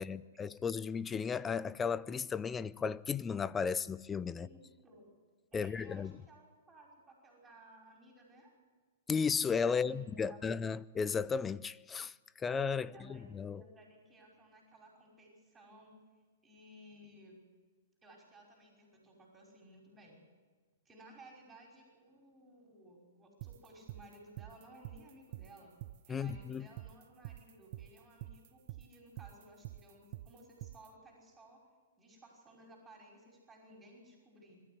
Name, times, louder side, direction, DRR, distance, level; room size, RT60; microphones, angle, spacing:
voice 1, 0.0-4.5 5.5-6.2 9.1-13.6 26.1-26.7, left 6 dB, 15° left, 0.5 m, -35 dB
voice 2, 4.3-5.1 5.5-8.5 9.7-10.6 12.8-16.0 16.4-17.4 18.0-20.2 20.9-25.7 26.1-31.6 32.0-34.6, right 1 dB, 15° right, 5.5 m, -58 dB
sound 1, 23.4-30.9, right 15 dB, 50° right, 0.5 m, -47 dB
22.5 x 13.0 x 9.7 m
hypercardioid pair, 125°, 0 cm